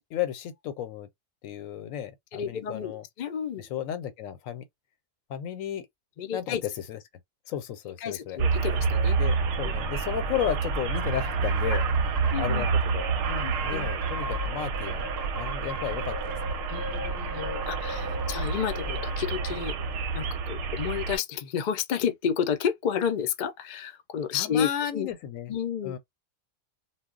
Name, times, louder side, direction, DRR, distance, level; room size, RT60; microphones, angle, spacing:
voice 1, 0.1-1.1 1.4-3.0 3.6-4.6 5.3-5.8 6.3-7.0 7.5-8.4 9.2-16.6 18.0-18.2 24.3-25.5 25.8-26.0, left 10 dB, 90° left, 1.0 m, -34 dB
voice 2, 2.3-3.7 6.2-6.6 8.0-9.2 9.6-9.7 11.7-11.8 12.3-12.7 13.4-13.9 16.7-19.7 20.1-25.1 25.5-26.0, left 8 dB, 65° left, 0.4 m, -31 dB
sound 1, 8.4-21.2, right 4 dB, 70° right, 0.8 m, -28 dB
sound 2, 10.9-12.3 12.8-12.9 13.2-14.5 14.7-19.9, right 1 dB, 25° right, 0.6 m, -39 dB
2.2 x 2.0 x 3.7 m
omnidirectional pair, 1.4 m